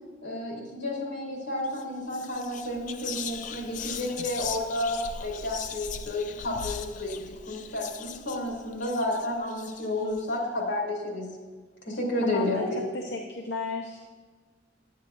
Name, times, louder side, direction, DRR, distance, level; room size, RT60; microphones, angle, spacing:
voice 1, 0.2-11.4 11.8-12.8, left 1 dB, 90° left, -3 dB, 2.5 m, -31 dB
Whispering, 1.6-1.8 2.1-10.2, left 7 dB, 45° left, 0.3 m, -39 dB
voice 2, 12.2-12.7 12.9-14.1, left 4 dB, 75° left, 1 dB, 0.7 m, -33 dB
9.3 x 9.3 x 2.5 m, 1.4 s
head